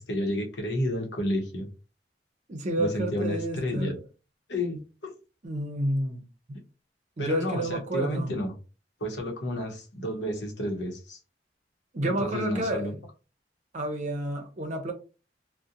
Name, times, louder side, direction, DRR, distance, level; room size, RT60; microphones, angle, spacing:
voice 1, 0.0-1.7 2.8-4.0 4.5-5.1 7.2-8.5 9.0-11.2 12.0-12.9, equal, 85° left, 0.8 m, -31 dB
voice 2, 2.5-4.0 5.4-6.2 6.5-6.6 7.2-8.3 11.9-12.9 13.7-14.9, right 1 dB, 45° right, 0.6 m, -30 dB
2.7 x 2.1 x 2.4 m
head